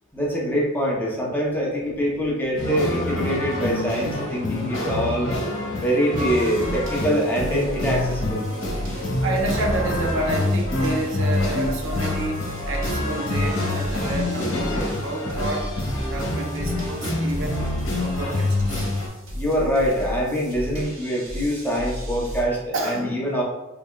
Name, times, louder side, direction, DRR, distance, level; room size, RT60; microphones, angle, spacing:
voice 1, 0.1-5.3 5.8-8.5 19.3-23.4, equal, 10° left, -4 dB, 0.7 m, -24 dB
sound 1, 2.6-19.1, left 1 dB, 75° left, 1.1 m, -26 dB
sound 2, 6.2-22.4, equal, 90° right, 1.4 m, -34 dB
voice 2, 9.2-15.7 16.1-17.6 18.0-18.9 22.7-23.2, right 2 dB, 65° right, 1 dB, 0.6 m, -29 dB
4.1 x 3.4 x 2.3 m, 1.0 s
head